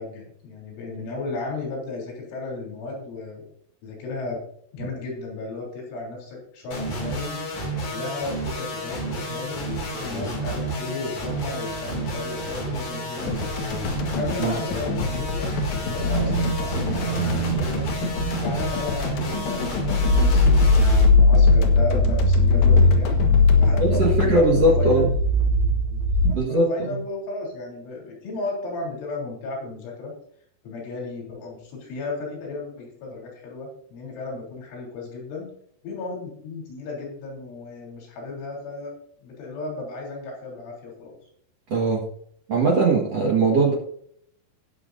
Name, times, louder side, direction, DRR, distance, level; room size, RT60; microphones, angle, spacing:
voice 1, 0.0-3.5 3.8-4.4 4.7-7.4 7.8-13.5 14.1-17.8 18.3-23.2 23.6-25.1 26.3-30.1 30.6-35.5 35.8-38.9 39.2-41.1, left 3 dB, 80° left, -2 dB, 6.0 m, -34 dB
sound 1, 6.7-21.0, right 1 dB, 45° left, 3.5 m, -31 dB
sound 2, 13.3-25.7, left 4 dB, 60° left, 2.5 m, -31 dB
sound 3, 16.0-18.7 19.1-19.4 19.8-26.3, left 2 dB, 20° left, 1.6 m, -19 dB
voice 2, 23.8-25.1 26.2-26.7 41.7-42.1 42.5-43.7, right 2 dB, 75° right, -2 dB, 1.5 m, -20 dB
18.5 x 7.4 x 2.7 m, 0.66 s
omnidirectional pair, 5.6 m